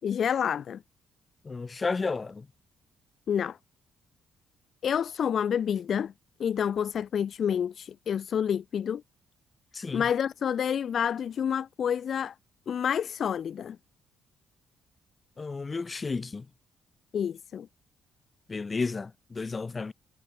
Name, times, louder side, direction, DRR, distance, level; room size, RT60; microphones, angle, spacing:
voice 1, 0.0-0.8 3.3-3.6 4.8-6.1 6.4-9.0 9.9-12.3 12.7-13.8 17.1-17.7, left 8 dB, 55° left, 6.5 m, -28 dB
voice 2, 1.4-2.5 9.7-10.0 15.4-16.5 18.5-19.9, left 4 dB, 30° left, 7.4 m, -32 dB
cardioid pair, 90°, 0 cm